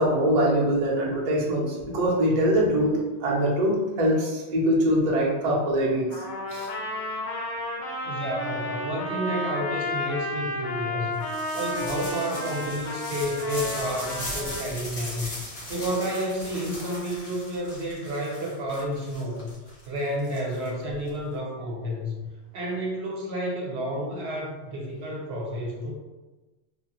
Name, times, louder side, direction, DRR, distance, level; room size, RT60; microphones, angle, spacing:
voice 1, 0.0-6.2 6.5-6.7, equal, 45° right, -3 dB, 0.6 m, -23 dB
Trumpet, 6.1-14.6, left 1 dB, 85° left, 1.1 m, -32 dB
voice 2, 8.0-11.2 11.5-19.5 19.9-22.2 22.5-25.9, equal, 75° right, -2 dB, 1.0 m, -30 dB
sound 1, 11.2-21.1, left 1 dB, 65° left, 1.1 m, -39 dB
3.2 x 2.1 x 2.9 m, 1.2 s
omnidirectional pair, 1.1 m